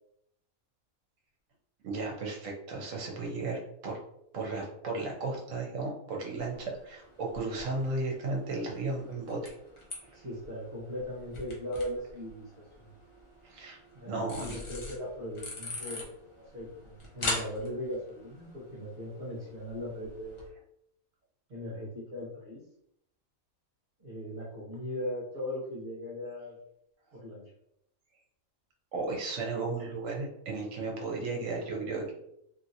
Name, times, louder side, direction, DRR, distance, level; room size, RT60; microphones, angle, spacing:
voice 1, 1.8-4.0 4.3-9.5 13.4-13.8 14.1-14.6 15.8-15.9 28.9-32.1, right 3 dB, 70° right, -1 dB, 1.2 m, -34 dB
sound 1, 6.4-20.5, left 2 dB, 35° left, 0.5 m, -43 dB
voice 2, 10.1-12.9 13.9-20.4 21.5-22.6 24.0-26.6 27.1-27.4, left 1 dB, 45° right, -9 dB, 1.2 m, -39 dB
2.8 x 2.7 x 2.6 m, 0.78 s
omnidirectional pair, 1.4 m